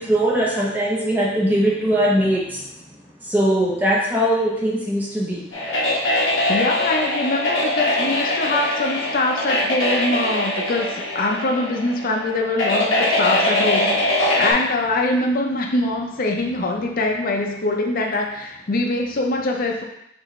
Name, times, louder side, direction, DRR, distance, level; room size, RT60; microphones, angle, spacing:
voice 1, 0.0-2.9 3.2-5.5, right 1 dB, 10° right, -4 dB, 0.6 m, -21 dB
sound 1, 5.5-14.5, left 1 dB, 90° left, 1.1 m, -22 dB
voice 2, 6.5-19.8, left 2 dB, 45° left, 1 dB, 0.6 m, -23 dB
5.9 x 2.7 x 3.1 m, 0.80 s
head